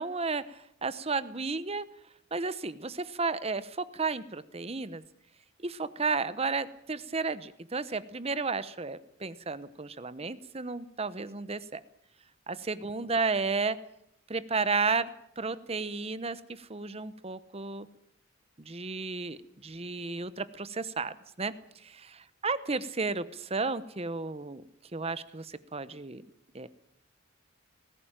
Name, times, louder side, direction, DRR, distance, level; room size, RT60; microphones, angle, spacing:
voice 1, 0.0-1.8 2.3-5.0 5.6-11.8 12.5-13.8 14.3-15.1 15.4-17.9 18.6-24.6 24.9-26.2 26.5-26.7, right 4 dB, 30° right, 14 dB, 0.9 m, -33 dB
19.5 x 16.0 x 9.0 m, 0.73 s
head